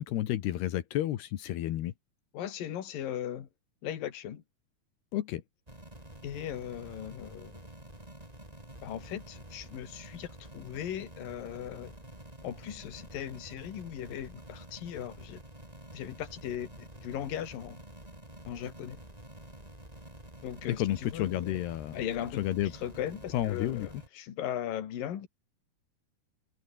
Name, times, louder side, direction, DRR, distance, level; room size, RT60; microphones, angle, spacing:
voice 1, 0.0-1.9 5.1-5.4 20.8-22.0 22.4-22.7 23.3-23.9, left 13 dB, 85° left, 3.5 m, -31 dB
voice 2, 2.3-3.5 3.8-4.4 6.2-7.7 8.8-11.9 12.4-15.4 15.9-17.8 18.5-19.0 20.4-21.6 21.9-25.3, left 10 dB, 65° left, 3.8 m, -38 dB
sound 1, 5.7-24.1, right 1 dB, 10° right, 6.1 m, -49 dB
omnidirectional pair, 4.6 m